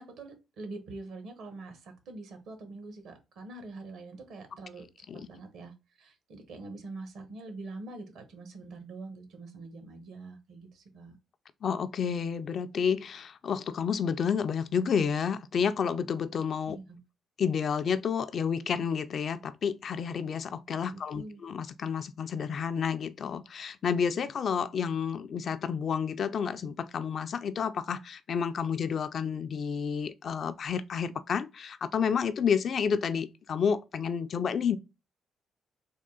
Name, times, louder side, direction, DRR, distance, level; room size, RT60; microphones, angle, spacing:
voice 1, 0.0-4.8 5.3-11.2 16.7-17.0 20.9-21.4, right 3 dB, 75° right, 1.0 m, -44 dB
voice 2, 11.6-16.8 17.4-34.8, left 7 dB, 55° left, 0.3 m, -30 dB
3.6 x 2.3 x 3.7 m
cardioid pair, 90°, 0 cm